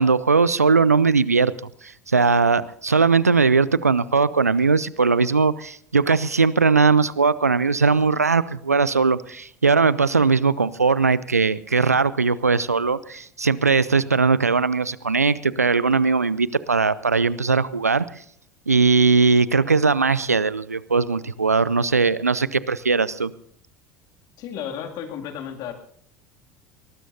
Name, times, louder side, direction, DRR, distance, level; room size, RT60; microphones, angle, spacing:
voice 1, 0.0-1.5 2.1-18.0 18.7-23.3, right 4 dB, 90° right, 19 dB, 0.5 m, -19 dB
voice 2, 24.4-25.7, left 8 dB, 50° left, 3 dB, 2.5 m, -33 dB
23.0 x 19.5 x 2.7 m, 0.62 s
figure-of-eight pair, 70°, 8 cm